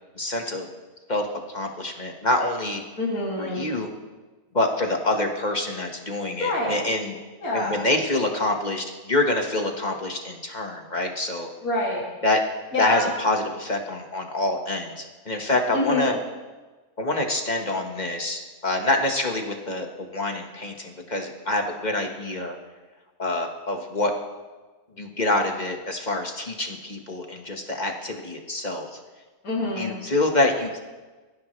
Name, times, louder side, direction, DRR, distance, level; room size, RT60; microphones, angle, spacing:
voice 1, 0.2-0.7 1.1-1.3 1.5-2.8 3.4-3.9 4.5-7.2 7.5-11.5 12.2-12.4 12.8-16.2 17.0-22.5 23.2-24.1 25.0-28.9 29.8-30.8, left 2 dB, 25° left, 3 dB, 1.5 m, -26 dB
voice 2, 3.0-3.6 6.4-6.7 7.4-7.8 11.6-12.0 12.7-13.1 15.7-16.1 29.4-29.9, left 2 dB, 55° left, -5 dB, 3.2 m, -26 dB
22.5 x 15.0 x 3.3 m, 1.3 s
omnidirectional pair, 1.8 m